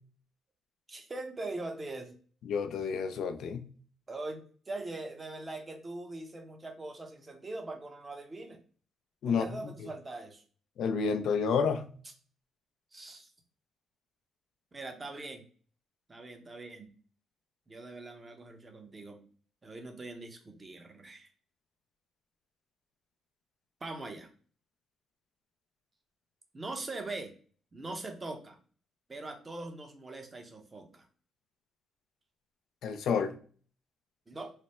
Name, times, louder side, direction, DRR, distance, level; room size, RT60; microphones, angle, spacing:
voice 1, 0.9-2.2 4.1-8.6 9.3-10.4 12.9-13.3 14.7-15.4 16.1-16.9 17.7-19.2 19.6-21.3 23.8-24.3 26.5-27.3 27.7-28.6 29.1-31.1 34.3-34.5, right 2 dB, 25° right, 0.8 m, -42 dB
voice 2, 2.5-3.7 9.2-9.4 10.8-11.9 32.8-33.3, left 5 dB, 70° left, 0.4 m, -29 dB
3.3 x 2.1 x 4.2 m
cardioid pair, 90°, 0 cm